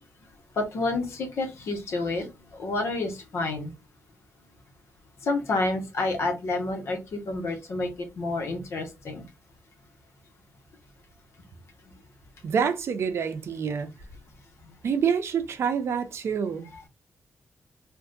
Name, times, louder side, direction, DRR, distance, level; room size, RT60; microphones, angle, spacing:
voice 1, 0.6-3.7 5.2-9.2, left 2 dB, 75° left, 1.1 m, -29 dB
voice 2, 12.4-13.9 14.8-16.7, right 7 dB, 75° right, 0.6 m, -27 dB
3.6 x 2.5 x 2.6 m
cardioid pair, 85°, 5 cm